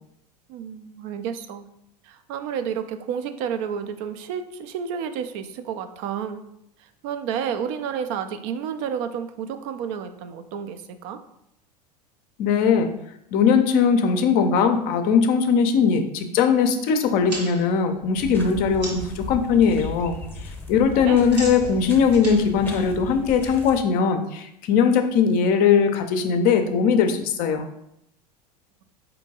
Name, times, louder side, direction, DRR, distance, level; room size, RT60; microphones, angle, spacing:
voice 1, 0.5-1.7 2.0-6.4 6.8-11.2 20.9-21.3, right 7 dB, 50° right, 9 dB, 0.4 m, -31 dB
voice 2, 12.4-12.9 13.3-20.1 20.7-27.6, left 6 dB, 45° left, 7 dB, 0.5 m, -20 dB
sound 1, 17.0-19.2 19.6-20.0 20.3-23.6, right 2 dB, 85° right, 1.2 m, -39 dB
sound 2, 18.2-23.8, left 2 dB, 10° left, 0.7 m, -37 dB
4.3 x 2.7 x 2.8 m, 0.79 s
hypercardioid pair, 80°, 21 cm